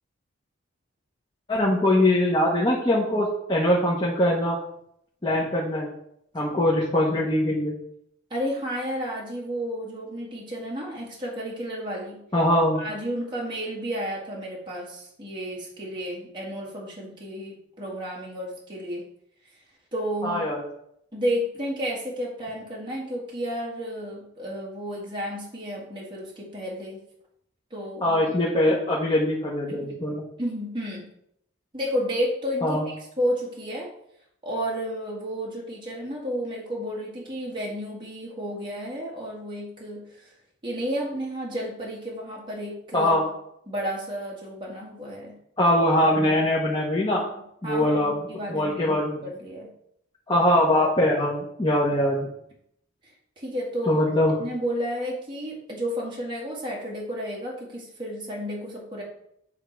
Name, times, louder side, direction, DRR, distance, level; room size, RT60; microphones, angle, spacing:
voice 1, 1.5-4.6 5.2-5.9 6.3-7.7 12.3-12.8 20.2-20.6 28.0-30.2 32.6-32.9 42.9-43.2 45.6-47.2 47.6-49.2 50.3-52.3 53.9-54.3, left 1 dB, 20° left, -5 dB, 1.1 m, -22 dB
voice 2, 8.3-12.2 12.8-19.0 19.9-20.4 21.1-27.0 27.7-28.5 29.7-30.0 30.4-31.1 31.7-33.9 34.4-40.3 40.6-43.3 43.7-45.4 47.1-49.7 53.0-54.0 54.4-59.0, equal, 25° right, -4 dB, 2.0 m, -32 dB
9.1 x 3.7 x 4.6 m, 0.75 s
head